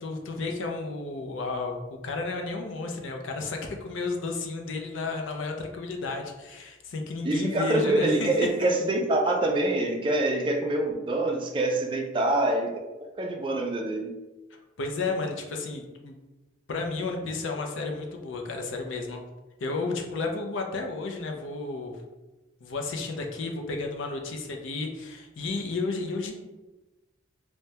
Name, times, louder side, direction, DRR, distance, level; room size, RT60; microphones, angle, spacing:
voice 1, 0.0-8.3 8.6-8.7 14.8-16.1 16.7-19.2 19.6-22.0 22.6-26.3, left 3 dB, 75° left, 2 dB, 0.5 m, -32 dB
voice 2, 7.2-12.7 13.0-14.1, right 2 dB, 25° right, 2 dB, 0.3 m, -25 dB
3.3 x 2.1 x 2.7 m, 1.1 s
head